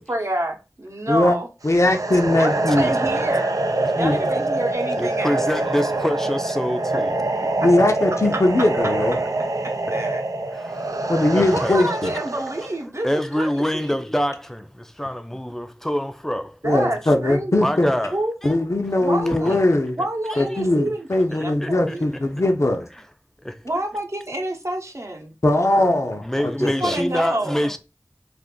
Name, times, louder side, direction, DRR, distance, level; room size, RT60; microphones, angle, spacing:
voice 1, 0.0-1.5 2.4-3.6 4.0-5.4 9.6-10.2 11.5-13.9 16.6-17.5 18.1-18.3 19.0-19.6 20.0-21.5 21.9-22.1 23.6-25.3 26.6-27.6, right 1 dB, 55° right, 0.8 m, -28 dB
voice 2, 1.6-2.9 3.9-4.2 7.6-9.2 11.1-12.1 16.6-17.9 18.4-20.0 20.4-22.8 25.4-26.2 26.6-27.0, left 1 dB, 55° left, 0.6 m, -20 dB
sound 1, 1.7-12.8, right 2 dB, 90° right, 0.4 m, -25 dB
voice 3, 2.7-3.1 5.0-7.1 8.0-9.1 10.5-12.2 13.0-16.6 17.6-18.2 18.4-18.6 19.4-19.6 20.0-20.4 21.3-22.2 23.4-23.6 26.2-27.8, equal, 5° left, 0.4 m, -27 dB
2.5 x 2.5 x 3.6 m
wide cardioid pair, 45°, 6 cm